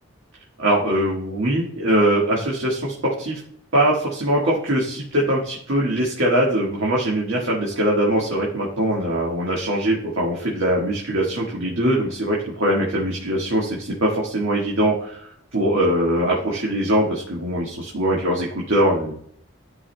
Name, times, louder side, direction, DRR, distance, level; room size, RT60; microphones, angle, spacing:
voice 1, 0.6-3.4 3.7-19.1, right 1 dB, 70° right, -3 dB, 1.5 m, -22 dB
13.5 x 4.9 x 2.2 m, 0.64 s
head